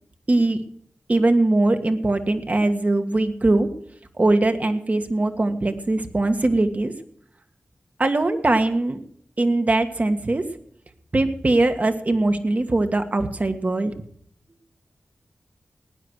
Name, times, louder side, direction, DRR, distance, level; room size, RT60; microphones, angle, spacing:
voice 1, 0.3-0.6 1.1-3.7 4.2-6.9 8.0-9.0 9.4-10.4 11.1-13.9, right 2 dB, 40° right, 7 dB, 1.7 m, -21 dB
18.0 x 9.8 x 6.5 m, 0.66 s
cardioid pair, 50°, 4 cm